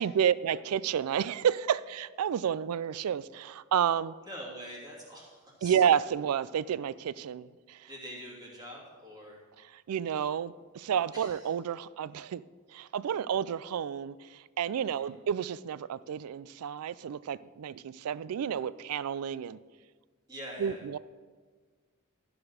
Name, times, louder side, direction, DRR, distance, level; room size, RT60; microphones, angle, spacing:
voice 1, 0.0-4.1 5.6-7.9 9.7-12.4 12.7-19.6 20.6-21.0, right 8 dB, 85° right, 19 dB, 0.4 m, -30 dB
voice 2, 4.2-5.8 7.9-9.4 11.1-11.5 14.8-15.1 20.3-20.8, equal, 20° right, -5 dB, 2.8 m, -45 dB
13.0 x 5.0 x 6.5 m, 1.5 s
head